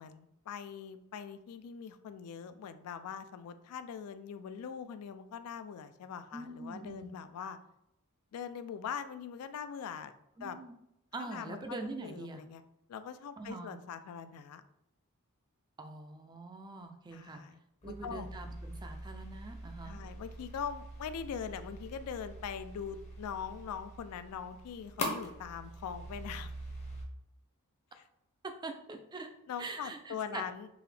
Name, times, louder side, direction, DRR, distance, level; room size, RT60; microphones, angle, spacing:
voice 1, 0.0-7.6 8.3-10.1 10.4-10.6 11.2-12.6 12.9-14.6 17.1-18.3 19.8-26.5 27.9-28.0 29.5-30.7, left 7 dB, 80° left, 12 dB, 0.3 m, -42 dB
voice 2, 6.3-7.1 7.4-7.5 10.4-10.7 11.1-12.4 13.4-13.7 15.8-17.4 17.8-20.0 28.4-29.3 29.6-30.4, right 3 dB, 20° right, 6 dB, 0.3 m, -43 dB
sound 1, 17.8-27.0, equal, 30° left, 0.6 m, -44 dB
3.9 x 2.8 x 3.2 m, 0.83 s
head